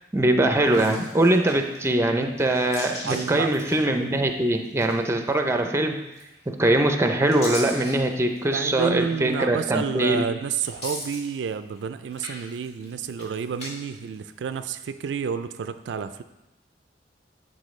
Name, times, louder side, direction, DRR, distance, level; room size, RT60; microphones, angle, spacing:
voice 1, 0.1-6.0 6.5-10.2, right 1 dB, 15° right, 5 dB, 0.5 m, -22 dB
sound 1, 0.6-1.9 2.3-4.3 4.6-5.3 6.1-6.6 7.0-8.6 9.2-9.3 10.5-11.8 12.1-13.7 14.0-14.8, left 1 dB, 40° left, 2.3 m, -38 dB
voice 2, 3.0-3.5 8.5-16.2, right 6 dB, 80° right, 10 dB, 0.3 m, -30 dB
11.5 x 4.2 x 3.2 m, 0.96 s
head